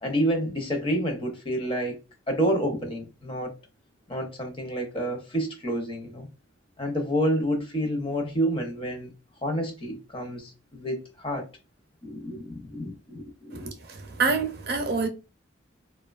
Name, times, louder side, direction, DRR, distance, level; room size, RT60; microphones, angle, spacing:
voice 1, 0.0-2.0 2.3-3.5 4.1-6.3 6.8-9.1 9.4-11.5 12.0-13.7, equal, 30° left, 0.6 m, -29 dB
voice 2, 13.5-15.1, right 4 dB, 55° right, 0.6 m, -27 dB
2.7 x 2.2 x 2.3 m
head